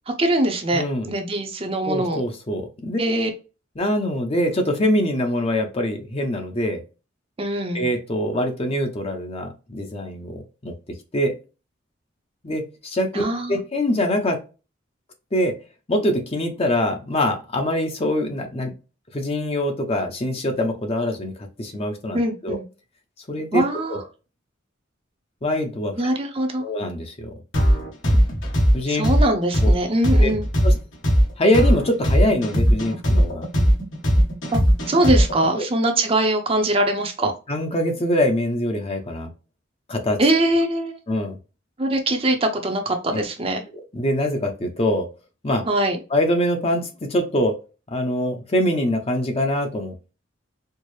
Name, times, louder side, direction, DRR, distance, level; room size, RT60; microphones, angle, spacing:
voice 1, 0.2-2.2 3.0-3.3 7.4-7.9 13.1-13.6 22.1-22.6 23.5-24.0 26.0-26.6 28.1-28.2 28.9-30.5 34.5-34.6 34.9-37.3 40.2-41.0 41.8-43.6 45.7-46.0, right 1 dB, 30° right, 0.6 m, -22 dB
voice 2, 0.7-1.1 1.8-3.0 3.8-6.8 7.7-10.7 11.1-11.3 12.4-14.4 15.3-15.5 15.9-18.7 19.1-21.3 21.6-22.6 23.3-23.6 23.9-24.0 25.4-25.9 26.6-27.3 28.7-29.1 29.6-29.7 30.2-30.3 30.6-30.8 31.4-33.5 35.6-35.7 37.2-39.3 39.9-40.2 41.1-41.4 43.1-43.2 43.9-45.1 45.4-45.6 46.1-47.5 47.9-50.1, left 1 dB, 30° left, 0.7 m, -24 dB
sound 1, 27.5-35.5, equal, 70° left, 1.4 m, -18 dB
4.5 x 2.0 x 3.1 m
head